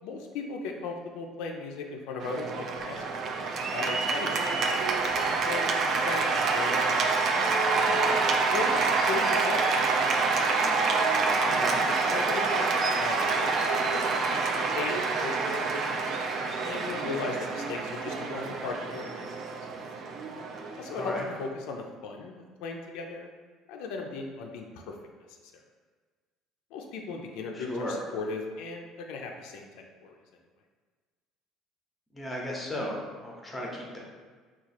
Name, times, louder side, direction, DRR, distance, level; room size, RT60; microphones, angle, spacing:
voice 1, 0.0-3.5 3.7-4.6 5.4-5.7 6.0-7.5 7.8-8.0 8.5-10.3 11.9-16.2 16.6-19.3 20.8-23.3 23.7-25.0 25.5-25.6 26.7-29.7 30.0-30.2, left 4 dB, 85° left, 2 dB, 0.4 m, -37 dB
Cheering / Applause, 2.2-21.5, right 4 dB, 45° right, 0.3 m, -27 dB
voice 2, 11.4-11.8 20.9-21.3 27.5-28.0 32.1-34.0, left 1 dB, 10° left, -2 dB, 0.6 m, -35 dB
2.9 x 2.3 x 4.1 m, 1.5 s
cardioid pair, 145°, 0 cm